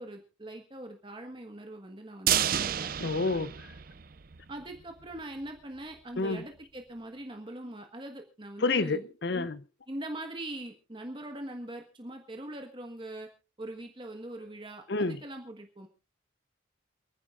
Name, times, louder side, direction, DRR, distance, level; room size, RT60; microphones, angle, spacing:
voice 1, 0.0-2.9 4.5-9.0 9.3-9.5 9.9-13.3 13.6-15.9, right 1 dB, 25° right, 1.4 m, -42 dB
sound 1, 2.3-4.4 4.7-4.8 5.2-5.3, right 10 dB, 45° right, 0.5 m, -30 dB
voice 2, 3.0-3.5 6.2-6.4 8.6-9.6 14.9-15.2, left 3 dB, 55° left, 0.7 m, -28 dB
28.0 x 10.0 x 2.4 m
head